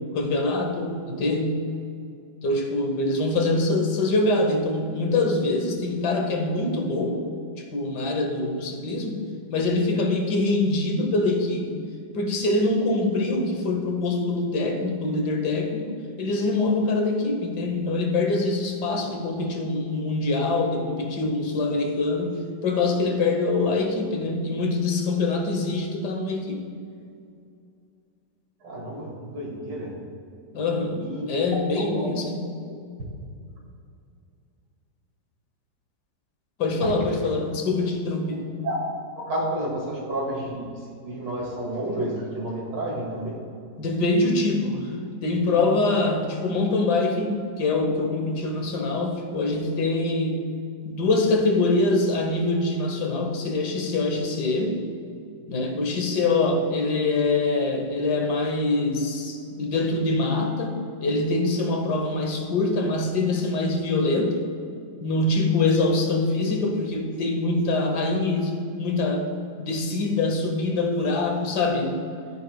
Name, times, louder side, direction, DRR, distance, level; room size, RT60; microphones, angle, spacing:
voice 1, 0.1-1.6 2.4-7.3 7.6-11.9 12.1-26.7 30.5-32.5 36.6-38.5 43.8-44.9 45.2-50.5 50.8-54.8 55.5-64.4 65.0-69.3 69.6-72.0, left 2 dB, 70° left, 3 dB, 1.6 m, -24 dB
voice 2, 28.6-29.9 31.0-31.3 31.8-32.1 36.8-37.2 38.6-38.8 39.2-43.4, right 1 dB, 80° right, -4 dB, 2.8 m, -31 dB
13.0 x 9.0 x 2.3 m, 2.4 s
omnidirectional pair, 1.9 m